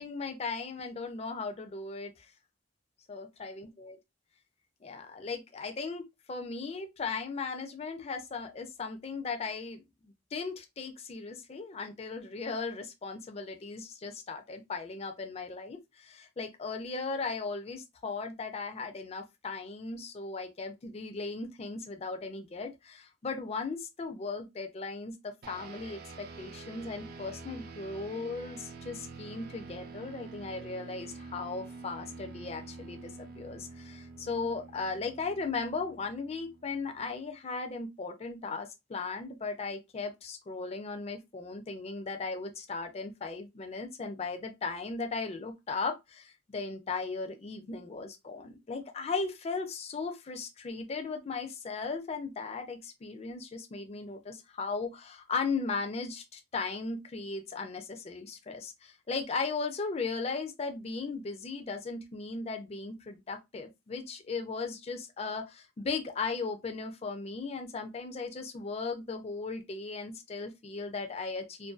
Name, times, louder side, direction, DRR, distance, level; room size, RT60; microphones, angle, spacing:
voice 1, 0.0-2.1 3.1-4.0 4.8-9.8 10.3-71.7, left 4 dB, 35° left, 0.4 m, -37 dB
sound 1, 25.4-37.1, right 3 dB, 55° right, 0.4 m, -47 dB
2.5 x 2.2 x 2.3 m
head